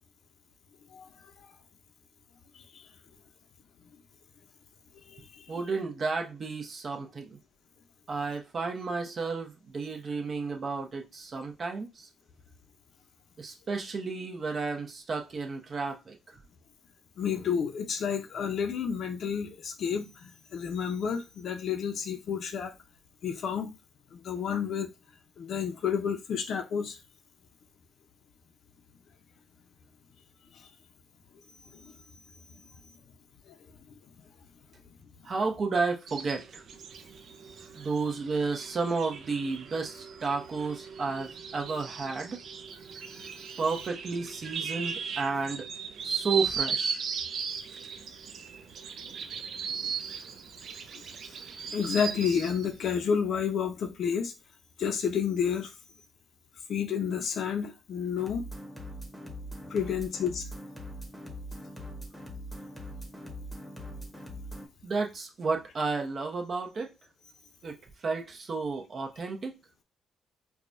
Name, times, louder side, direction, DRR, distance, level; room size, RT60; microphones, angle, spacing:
voice 1, 5.5-7.4 8.1-12.1 13.4-16.3 35.2-36.6 37.7-42.4 43.6-45.7 46.0-47.0 64.8-66.9 67.6-69.5, right 4 dB, 45° right, 0.8 m, -32 dB
voice 2, 17.2-22.7 23.2-23.7 24.1-24.9 25.4-26.9 31.8-31.9 51.7-54.3 54.8-55.7 56.7-58.4 59.7-60.4, left 7 dB, 65° left, 0.6 m, -30 dB
sound 1, 36.1-52.7, right 6 dB, 65° right, 0.4 m, -37 dB
sound 2, 58.2-64.7, equal, 5° left, 1.0 m, -42 dB
4.7 x 2.3 x 2.6 m
cardioid pair, 90°, 0 cm